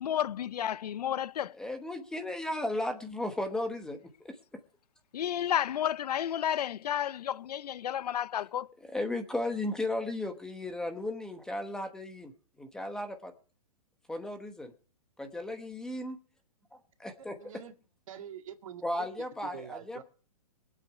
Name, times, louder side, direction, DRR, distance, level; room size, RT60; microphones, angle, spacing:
voice 1, 0.0-1.5 5.1-8.7, left 10 dB, 90° left, 0.5 m, -31 dB
voice 2, 1.6-4.0 4.2-4.4 8.8-12.3 12.6-13.3 14.1-14.7 15.2-16.2 16.7-17.4 18.8-20.0, left 1 dB, 5° left, 1.1 m, -35 dB
voice 3, 17.4-17.7 18.1-18.8 19.4-20.0, right 9 dB, 60° right, 2.1 m, -44 dB
22.0 x 8.2 x 4.7 m
hypercardioid pair, 165°, 20 cm